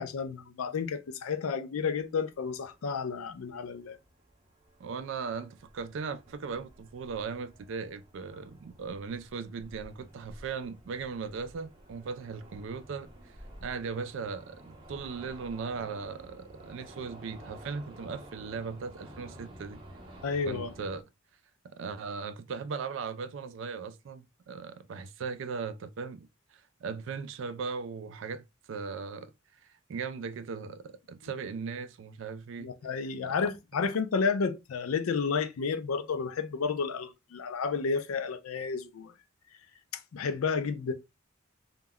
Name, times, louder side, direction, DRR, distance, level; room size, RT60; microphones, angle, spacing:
voice 1, 0.0-4.0 20.2-20.7 32.6-39.1 39.9-40.9, left 5 dB, 85° left, 0.4 m, -31 dB
sound 1, 2.0-21.0, right 1 dB, 25° right, 0.6 m, -52 dB
voice 2, 4.8-13.1 13.6-19.8 20.5-21.0 21.6-29.3 29.9-32.7 33.2-33.3, right 5 dB, 60° right, 0.3 m, -38 dB
2.2 x 2.1 x 3.4 m
head